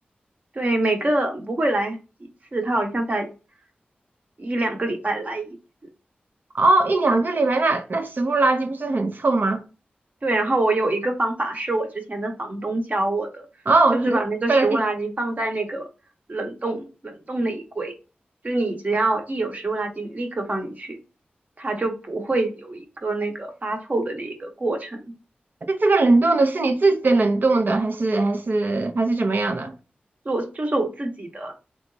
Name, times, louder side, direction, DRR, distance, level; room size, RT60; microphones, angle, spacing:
voice 1, 0.5-3.3 4.4-5.6 10.2-13.5 13.9-15.9 16.3-17.9 18.4-21.0 21.6-25.1 30.2-31.5, right 2 dB, 45° right, 1.1 m, -26 dB
voice 2, 6.5-9.6 13.7-14.2 14.5-14.8 25.7-29.7, right 3 dB, 65° right, 0.7 m, -20 dB
3.3 x 3.0 x 2.7 m
cardioid pair, 45°, 4 cm